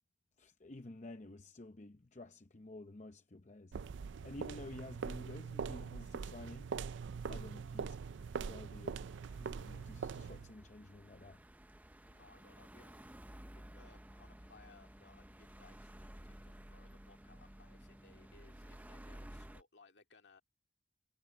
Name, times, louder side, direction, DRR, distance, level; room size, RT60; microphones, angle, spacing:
voice 1, 0.4-3.9 4.2-6.7 7.3-8.0 8.3-9.1 9.3-11.4, left 2 dB, 40° left, 0.7 m, -51 dB
sound 1, 3.7-10.5, right 5 dB, 80° right, 0.4 m, -43 dB
sound 2, 6.8-19.6, right 1 dB, 10° right, 0.7 m, -56 dB
voice 2, 12.0-13.1 13.5-20.4, left 3 dB, 65° left, 2.1 m, -64 dB
sound 3, 12.4-18.3, equal, 10° left, 0.9 m, -63 dB
head